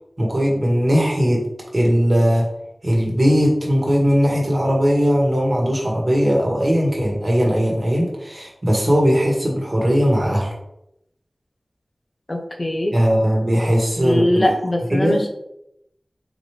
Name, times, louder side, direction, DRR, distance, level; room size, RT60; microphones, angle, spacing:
voice 1, 0.2-2.5 2.8-10.5 12.9-14.5 14.9-15.2, equal, 45° right, -2 dB, 1.3 m, -19 dB
voice 2, 12.3-12.9 14.0-15.3, left 1 dB, 45° left, 3 dB, 0.6 m, -21 dB
4.1 x 3.0 x 3.2 m, 0.80 s
wide cardioid pair, 50°, 0 cm